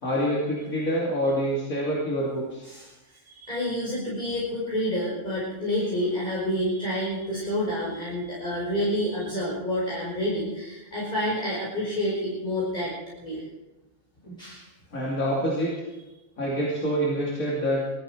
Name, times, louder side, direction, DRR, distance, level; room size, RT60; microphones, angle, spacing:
voice 1, 0.0-2.7 14.2-14.3 14.9-15.7 16.4-17.8, equal, 90° left, -5 dB, 3.2 m, -26 dB
voice 2, 2.6-13.4 14.4-14.7, equal, 35° left, -7 dB, 5.3 m, -29 dB
20.0 x 13.5 x 4.6 m, 1.0 s
omnidirectional pair, 1.4 m